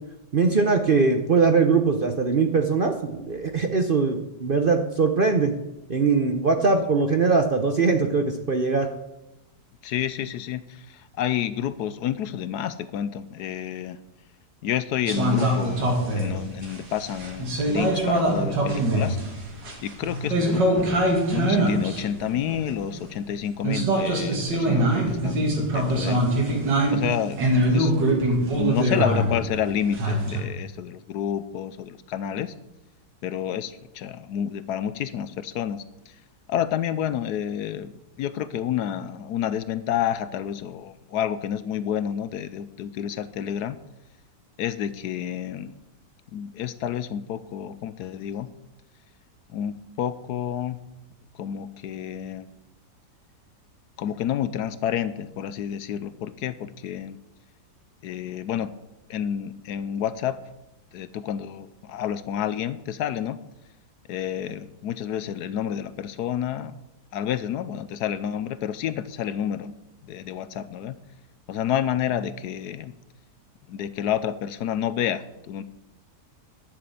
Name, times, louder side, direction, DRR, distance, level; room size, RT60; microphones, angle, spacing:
voice 1, 0.3-5.5 5.9-8.9, right 4 dB, 45° right, 5 dB, 0.7 m, -21 dB
voice 2, 9.8-14.0 14.6-19.2 19.8-20.9 21.3-26.3 26.9-27.4 27.7-27.9 28.6-32.5 33.2-36.1 36.5-37.9 38.2-43.8 44.6-45.7 46.3-48.5 49.5-50.8 51.3-52.5 54.0-57.2 58.0-58.7 59.1-60.4 60.9-63.4 64.1-66.7 67.1-69.7 70.0-71.0 71.5-72.9 73.7-75.6, left 10 dB, 75° left, 14 dB, 1.1 m, -29 dB
sound 1, 15.1-23.1 23.6-30.4, right 1 dB, 90° right, 2.9 m, -23 dB
11.0 x 6.8 x 8.3 m, 0.93 s
omnidirectional pair, 1.9 m